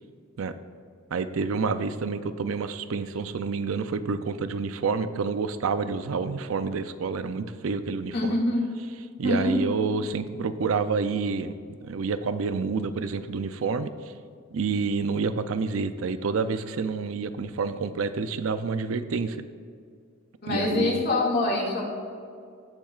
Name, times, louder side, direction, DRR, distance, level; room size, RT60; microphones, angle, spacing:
voice 1, 1.1-8.3 9.2-11.5 11.8-13.9 14.5-19.4 20.5-21.0, right 4 dB, 90° right, 11 dB, 0.5 m, -28 dB
voice 2, 8.1-8.7 9.2-9.6 20.4-21.8, left 2 dB, 50° left, -2 dB, 2.1 m, -25 dB
16.5 x 7.3 x 2.4 m, 2.2 s
head